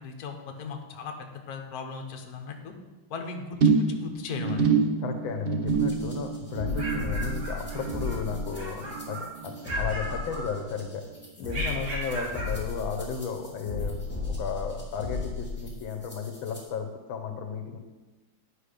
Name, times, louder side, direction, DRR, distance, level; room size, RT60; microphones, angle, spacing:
voice 1, 0.0-2.7 3.1-4.7, left 5 dB, 55° left, 4 dB, 1.4 m, -37 dB
sound 1, 3.6-10.2 10.5-10.9 11.2-11.3, right 5 dB, 75° right, 0.5 m, -28 dB
voice 2, 5.0-11.0 11.4-14.0 14.4-17.8, left 6 dB, 85° left, 5 dB, 1.6 m, -34 dB
sound 2, 5.7-16.6, left 3 dB, 5° left, 1.6 m, -35 dB
sound 3, 6.5-8.2 8.5-9.3 9.6-10.9 11.5-12.6, right 2 dB, 50° right, 2.2 m, -36 dB
9.9 x 5.3 x 5.0 m, 1.2 s
omnidirectional pair, 2.1 m